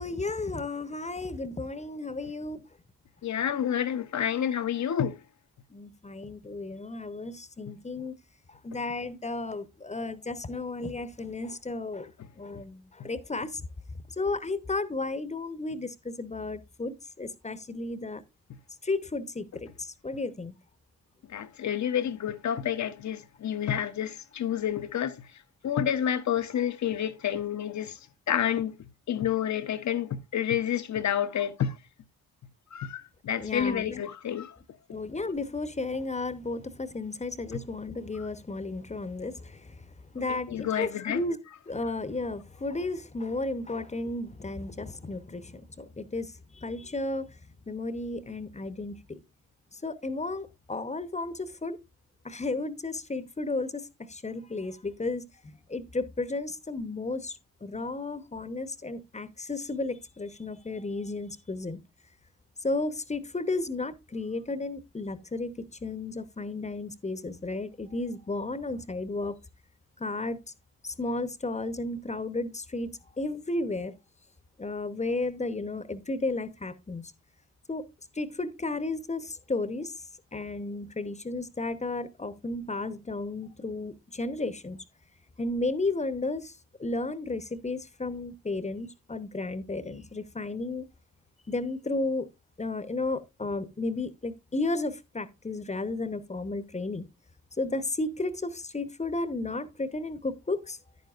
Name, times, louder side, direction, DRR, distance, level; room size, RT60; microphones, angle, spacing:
voice 1, 0.0-2.6 5.7-8.1 8.6-12.1 12.4-13.6 14.2-18.2 18.8-20.5 33.4-34.0 34.9-39.7 40.1-41.4 41.7-47.3 47.7-49.2 49.8-51.8 52.2-55.3 55.7-57.4 57.6-61.8 62.6-69.4 70.0-70.4 70.8-72.9 73.2-73.9 74.6-77.1 77.7-77.9 78.2-79.9 80.3-84.8 85.4-86.5 86.8-90.9 91.5-92.3 92.6-97.1 97.6-100.8, left 2 dB, 20° left, 0.9 m, -33 dB
voice 2, 3.2-5.2 21.3-25.2 25.6-28.0 28.3-28.7 29.1-31.7 32.7-34.5 38.2-38.3 40.3-41.2, left 9 dB, 50° left, 0.9 m, -29 dB
10.0 x 9.4 x 2.5 m
supercardioid pair, 55°, 37 cm